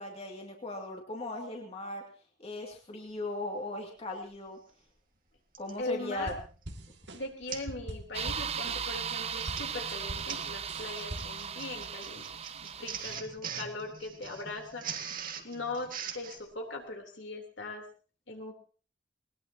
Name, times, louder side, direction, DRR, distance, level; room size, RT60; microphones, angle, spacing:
voice 1, 0.0-2.0 2.4-4.6 5.6-6.3, left 2 dB, 35° left, 1 dB, 2.5 m, -38 dB
Printer, 4.4-4.5 5.5-5.8 6.4-6.6 6.9-7.0 7.5-7.8 8.1-8.4 9.2-16.4, right 7 dB, 50° right, 2.0 m, -42 dB
voice 2, 5.8-6.3 7.1-12.3 12.5-14.8 15.4-17.8 18.3-18.5, left 2 dB, 70° left, 2 dB, 3.5 m, -40 dB
sound 1, 6.2-9.2 9.5-11.5, right 1 dB, 65° right, 2.1 m, -43 dB
sound 2, 8.1-13.2, right 7 dB, 35° right, 0.7 m, -37 dB
20.5 x 20.0 x 2.9 m, 0.38 s
head